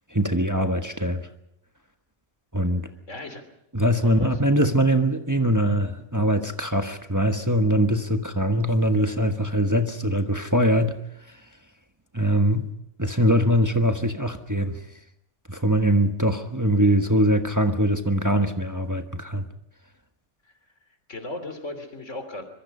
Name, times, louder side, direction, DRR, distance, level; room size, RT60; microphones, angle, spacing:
voice 1, 0.1-1.3 2.5-2.9 3.7-11.0 11.3-11.4 12.1-12.7 13.0-14.8 15.5-19.5, equal, 15° right, 1.3 m, -22 dB
voice 2, 3.1-3.4 4.0-4.4 21.1-22.4, left 2 dB, 85° left, 3.7 m, -36 dB
25.5 x 23.0 x 5.6 m
omnidirectional pair, 1.2 m